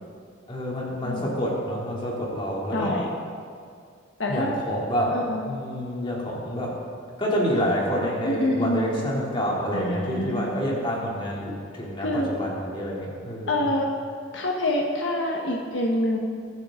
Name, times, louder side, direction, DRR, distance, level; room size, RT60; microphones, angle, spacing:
voice 1, 0.5-3.0 4.3-6.8 7.2-13.6, equal, 25° left, -4 dB, 2.9 m, -28 dB
voice 2, 1.0-1.4 2.7-3.1 4.2-4.5 5.1-5.4 8.2-9.2 9.7-10.6 12.0-12.3 13.5-13.9 14.3-16.2, left 1 dB, 70° left, 0 dB, 1.3 m, -26 dB
23.5 x 8.9 x 3.8 m, 2.2 s
head